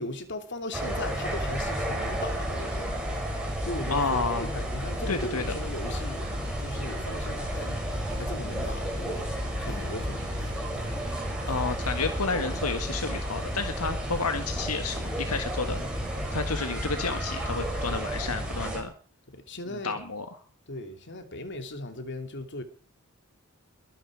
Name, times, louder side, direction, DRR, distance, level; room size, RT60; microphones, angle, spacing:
voice 1, 0.0-3.0 3.6-6.2 6.6-9.3 9.6-10.3 16.7-16.8 19.3-20.0 20.7-22.6, left 2 dB, 55° left, 2.7 m, -38 dB
sound 1, 0.7-18.8, equal, 5° right, 6.3 m, -32 dB
sound 2, 3.8-16.9, right 2 dB, 20° right, 6.2 m, -50 dB
voice 2, 3.9-4.5 5.1-5.4 11.4-15.8 16.3-18.9 19.7-20.3, left 4 dB, 80° left, 1.8 m, -31 dB
Guitar / Drum, 7.5-13.1, right 1 dB, 15° left, 4.5 m, -45 dB
22.5 x 10.0 x 4.8 m
head